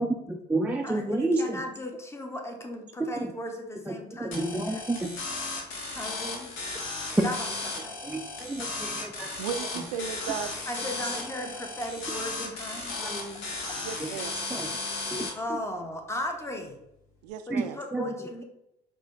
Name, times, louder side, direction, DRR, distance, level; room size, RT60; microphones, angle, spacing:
voice 1, 0.0-1.6 3.0-3.3 3.9-5.1 8.0-9.3 13.0-13.1 14.0-14.1 14.5-14.7 15.1-15.6 17.5-18.1, right 2 dB, 5° right, 1 dB, 0.4 m, -30 dB
voice 2, 0.8-4.8 5.9-6.6 7.2-8.2 10.7-13.5 15.3-16.8 17.5-18.4, left 1 dB, 10° left, 3 dB, 0.8 m, -37 dB
sound 1, 4.3-15.3, left 3 dB, 60° left, 1.0 m, -35 dB
voice 3, 9.4-10.6 13.8-14.3 17.2-17.8, right 8 dB, 75° right, 9 dB, 0.4 m, -35 dB
5.0 x 2.2 x 3.6 m, 0.83 s
figure-of-eight pair, 55°, 21 cm